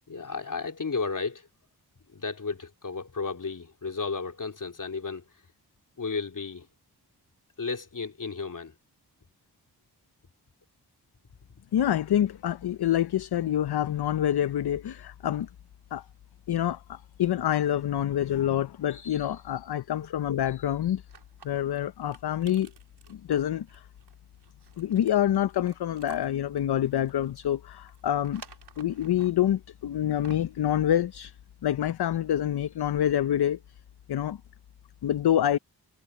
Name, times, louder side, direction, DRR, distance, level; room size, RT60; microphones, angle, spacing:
voice 1, 0.1-1.5 2.1-5.3 6.0-6.7 7.6-8.7, left 4 dB, 50° left, 3.3 m, -33 dB
voice 2, 11.7-15.5 15.9-16.0 16.5-21.0 21.4-22.7 23.1-23.8 24.8-28.4 28.8-31.3 31.6-33.6 34.1-34.4 35.0-35.6, left 11 dB, 70° left, 0.7 m, -26 dB
sound 1, 21.1-29.5 30.0-30.6, right 7 dB, 75° right, 4.0 m, -53 dB
cardioid pair, 55°, 40 cm